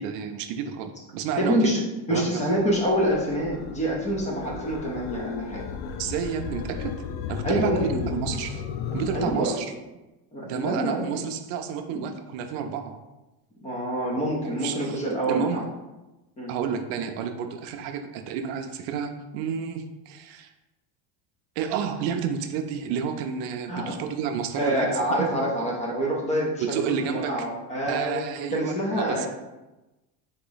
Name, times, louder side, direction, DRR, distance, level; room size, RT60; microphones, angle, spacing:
voice 1, 0.0-1.7 2.1-2.4 6.0-7.0 7.3-8.7 8.9-9.7 10.4-13.0 14.6-15.0 15.3-15.6 16.5-20.5 21.6-25.5 26.6-27.5 27.9-29.3, right 7 dB, 70° right, 6 dB, 0.5 m, -30 dB
voice 2, 1.4-1.8 2.1-5.6 7.4-8.1 9.1-9.6 10.3-11.0 11.9-12.0 13.6-15.6 16.4-16.5 23.7-24.0 24.6-28.2 28.5-29.3, equal, 15° left, -2 dB, 0.6 m, -26 dB
sound 1, 2.4-9.3, left 6 dB, 75° left, 0.6 m, -35 dB
3.8 x 3.0 x 3.9 m, 1.0 s
cardioid pair, 165°, 44 cm